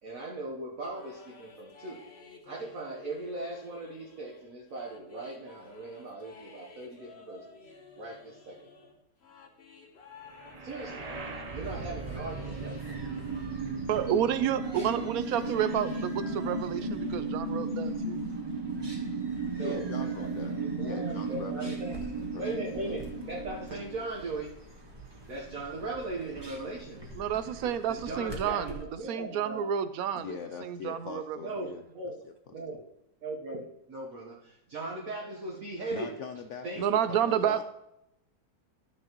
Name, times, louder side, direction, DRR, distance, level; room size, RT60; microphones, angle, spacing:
voice 1, 0.0-2.0 2.4-7.4 7.9-8.7 10.6-11.1 11.5-13.0 19.5-21.9 22.4-24.5 25.3-27.1 27.6-29.7 31.4-32.2 32.5-32.8 33.2-36.1 36.6-36.8, right 2 dB, 55° right, -2 dB, 1.5 m, -39 dB
sound 1, 0.8-13.6 13.9-17.3, left 3 dB, 45° left, 1.1 m, -52 dB
sound 2, 10.4-24.4, right 3 dB, 85° right, 0.3 m, -35 dB
sound 3, 11.6-28.8, right 1 dB, 15° right, 1.3 m, -48 dB
voice 2, 13.9-18.2 27.2-28.7 29.1-31.4 36.8-37.6, right 9 dB, 70° right, 12 dB, 0.9 m, -30 dB
voice 3, 19.6-21.8 22.1-22.6 30.1-31.8 32.2-32.3 35.9-37.6, left 6 dB, 80° left, 7 dB, 0.6 m, -42 dB
13.0 x 6.6 x 3.0 m, 0.83 s
omnidirectional pair, 1.8 m